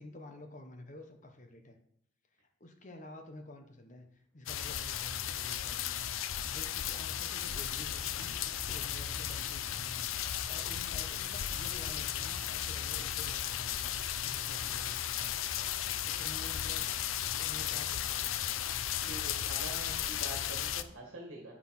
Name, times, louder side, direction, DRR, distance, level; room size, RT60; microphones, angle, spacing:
voice 1, 0.0-1.8 2.6-10.1 10.5-15.6 16.0-17.0 17.4-18.6, left 1 dB, 40° left, 5 dB, 1.0 m, -50 dB
sound 1, 4.5-20.8, left 10 dB, 80° left, 0.5 m, -35 dB
Truck, 5.9-17.7, equal, 5° left, 1.0 m, -57 dB
voice 2, 19.0-21.6, right 1 dB, 75° right, -2 dB, 1.9 m, -46 dB
8.5 x 5.7 x 5.8 m, 0.70 s
head